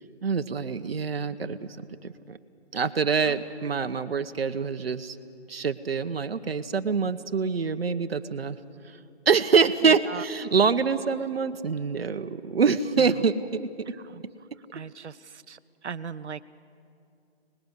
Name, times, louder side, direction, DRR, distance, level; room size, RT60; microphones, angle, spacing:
voice 1, 0.2-1.8 2.0-2.4 2.7-5.2 5.5-8.6 9.3-13.7, right 5 dB, 60° right, 9 dB, 1.1 m, -25 dB
voice 2, 9.8-10.2 14.0-14.2 14.7-16.4, right 6 dB, 85° right, 15 dB, 0.8 m, -38 dB
24.0 x 20.0 x 8.2 m, 2.5 s
hypercardioid pair, 170°, 33 cm